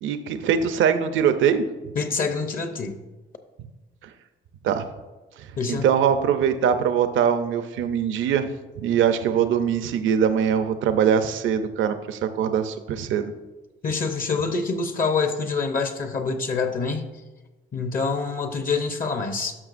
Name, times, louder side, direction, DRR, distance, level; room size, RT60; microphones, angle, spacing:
voice 1, 0.0-1.7 4.6-4.8 5.7-8.5 8.8-13.3, right 8 dB, 80° right, 10 dB, 0.6 m, -22 dB
voice 2, 2.0-3.0 5.6-5.8 13.8-17.1 17.7-19.5, left 4 dB, 45° left, 7 dB, 0.8 m, -26 dB
12.0 x 5.9 x 2.5 m, 1.2 s
cardioid pair, 90°, 20 cm